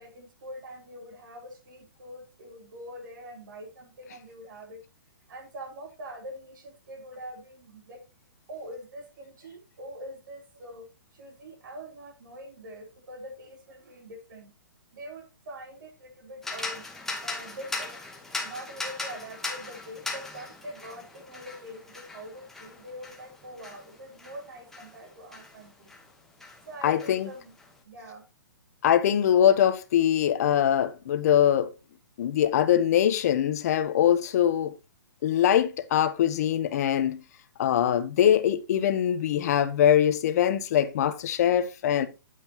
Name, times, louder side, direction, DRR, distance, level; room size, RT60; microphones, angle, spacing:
voice 1, 0.0-4.8 5.3-8.0 8.5-10.9 11.1-14.5 14.9-16.8 17.2-18.0 18.4-25.9 26.7-27.5 27.8-28.2, equal, 65° right, 3.7 m, -44 dB
sound 1, 16.4-26.1 26.4-27.7, left 3 dB, 5° left, 1.3 m, -39 dB
voice 2, 26.8-27.3 28.8-31.7 32.2-34.7 35.2-37.2 37.6-42.1, left 10 dB, 45° left, 1.1 m, -23 dB
9.3 x 7.8 x 3.0 m
hypercardioid pair, 155°, 11 cm